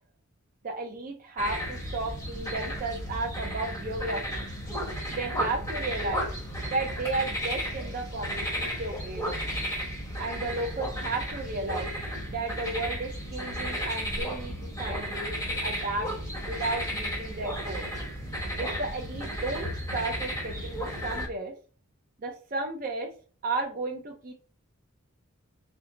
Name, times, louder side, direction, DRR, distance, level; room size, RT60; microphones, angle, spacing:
voice 1, 0.6-4.4 5.1-6.3 6.7-9.4 10.2-11.9 12.3-16.1 16.5-17.9 18.6-21.5 22.2-23.1 23.4-24.3, right 2 dB, 40° right, 2 dB, 0.5 m, -33 dB
sound 1, 1.4-21.3, equal, 15° left, 1.1 m, -34 dB
4.5 x 2.0 x 3.7 m, 0.38 s
head